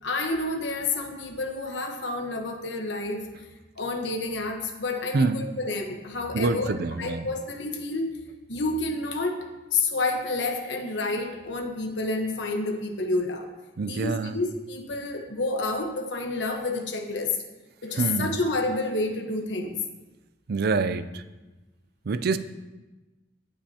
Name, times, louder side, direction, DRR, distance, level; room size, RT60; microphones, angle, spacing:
voice 1, 0.0-3.2 3.8-6.7 7.0-8.1 8.5-9.5 9.7-13.5 13.8-17.4 17.8-19.8, left 3 dB, 75° left, 3 dB, 1.2 m, -29 dB
voice 2, 6.3-7.3 13.8-14.4 17.9-18.4 20.5-21.2 22.1-22.4, right 3 dB, 60° right, 12 dB, 0.4 m, -26 dB
17.0 x 5.6 x 2.9 m, 1.1 s
head